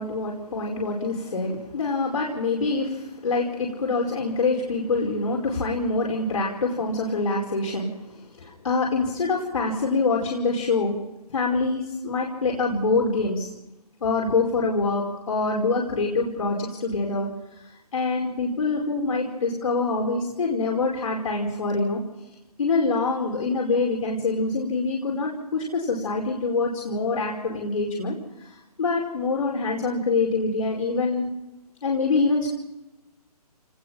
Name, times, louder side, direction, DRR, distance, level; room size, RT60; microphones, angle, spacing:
voice 1, 0.0-11.0 11.3-13.5 14.0-17.3 17.9-22.0 22.6-28.2 28.4-28.5 28.8-31.3 31.8-32.5, left 3 dB, 60° left, -2 dB, 4.8 m, -25 dB
29.0 x 19.5 x 5.9 m, 0.96 s
hypercardioid pair, 165°, 20 cm